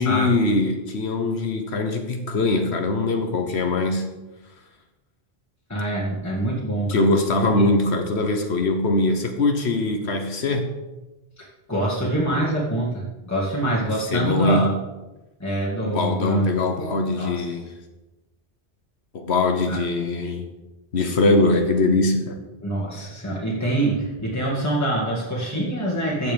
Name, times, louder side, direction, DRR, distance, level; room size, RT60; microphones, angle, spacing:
voice 1, 0.0-4.1 6.9-10.7 14.1-14.7 15.8-17.7 19.1-20.4 20.9-22.4, left 2 dB, 75° left, 5 dB, 1.4 m, -22 dB
voice 2, 5.7-7.1 7.4-7.7 11.4-14.7 15.4-16.5 17.2-17.5 19.7-19.8 22.6-26.3, right 1 dB, 15° left, -5 dB, 2.1 m, -25 dB
13.5 x 7.6 x 5.2 m, 1.1 s
omnidirectional pair, 1.1 m